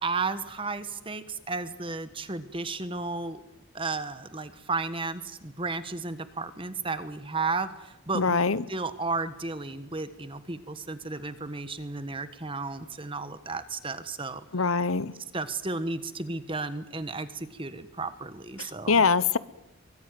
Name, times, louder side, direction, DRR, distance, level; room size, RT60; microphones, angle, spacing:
voice 1, 0.0-3.4 3.7-8.4 8.7-14.4 15.3-19.0, right 3 dB, 25° right, 12 dB, 1.4 m, -33 dB
voice 2, 8.1-8.6 14.5-15.1 18.6-19.4, left 5 dB, 85° left, 17 dB, 1.0 m, -24 dB
24.0 x 23.5 x 9.4 m, 0.87 s
head